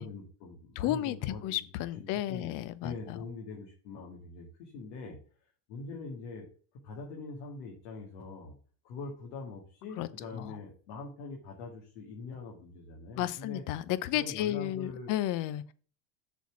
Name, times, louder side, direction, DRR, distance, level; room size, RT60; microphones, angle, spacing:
voice 1, 0.0-1.6 2.0-2.5 2.8-5.2 5.7-6.5 6.8-8.5 8.8-13.6 14.1-15.1, left 4 dB, 75° left, 2.1 m, -43 dB
voice 2, 0.8-3.2 10.0-10.6 13.2-15.7, left 13 dB, 55° left, 0.7 m, -33 dB
6.9 x 4.4 x 6.0 m
supercardioid pair, 110°, 38 cm